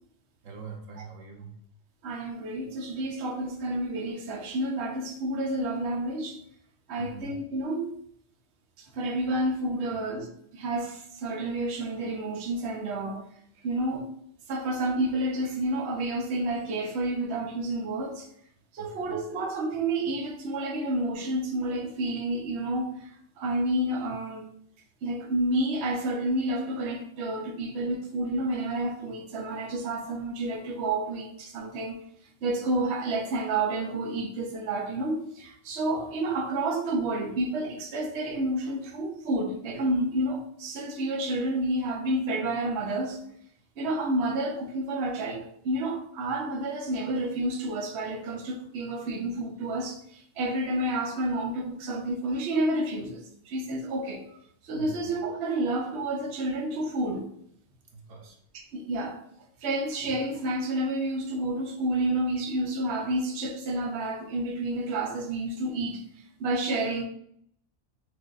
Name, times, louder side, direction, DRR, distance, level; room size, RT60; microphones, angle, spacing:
voice 1, 0.4-1.5 7.0-7.3 9.8-10.0 18.8-19.2 54.7-55.1 57.9-58.4, right 4 dB, 85° right, 1.2 m, -43 dB
voice 2, 2.0-6.4 6.9-7.9 8.8-10.3 10.5-13.2 13.6-14.0 14.5-18.3 18.7-23.1 23.4-24.5 25.0-32.0 32.4-43.2 43.8-54.2 54.6-57.3 58.5-59.2 59.6-66.0 66.4-67.0, right 1 dB, 65° right, 0.9 m, -30 dB
5.9 x 2.6 x 2.4 m
omnidirectional pair, 1.3 m